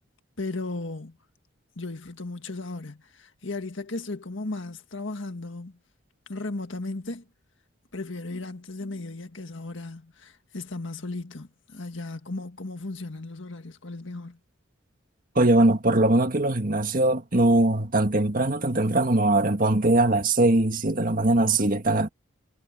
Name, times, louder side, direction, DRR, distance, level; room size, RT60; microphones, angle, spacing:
voice 1, 0.4-1.2 1.8-5.8 6.3-7.2 7.9-14.4, left 2 dB, 65° left, 1.8 m, -36 dB
voice 2, 15.4-22.1, right 2 dB, 45° right, 1.9 m, -21 dB
head